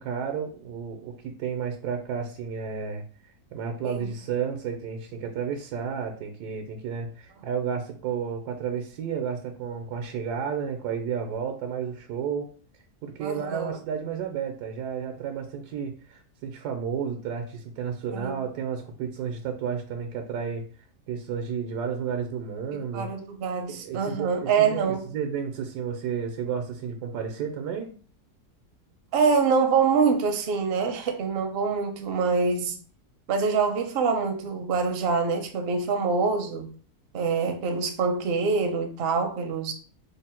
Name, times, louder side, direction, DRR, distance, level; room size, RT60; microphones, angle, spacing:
voice 1, 0.0-3.0 3.5-12.5 13.0-20.6 21.1-23.1 23.7-27.9, right 7 dB, 85° right, 1.2 m, -32 dB
voice 2, 13.2-13.8 18.1-18.4 22.7-25.1 29.1-32.8 33.3-36.7 37.1-39.7, right 5 dB, 60° right, 0.6 m, -25 dB
3.5 x 2.0 x 4.3 m
omnidirectional pair, 1.7 m